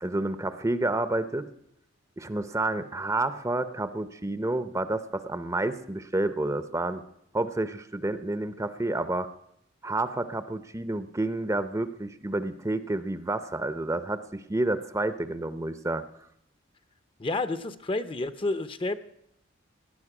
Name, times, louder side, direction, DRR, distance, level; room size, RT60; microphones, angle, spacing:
voice 1, 0.0-1.5 2.2-7.0 7.3-9.3 9.8-16.0, right 2 dB, 15° right, 13 dB, 0.6 m, -29 dB
voice 2, 17.2-19.0, left 2 dB, 25° left, 13 dB, 0.6 m, -30 dB
18.0 x 10.5 x 6.0 m, 0.77 s
head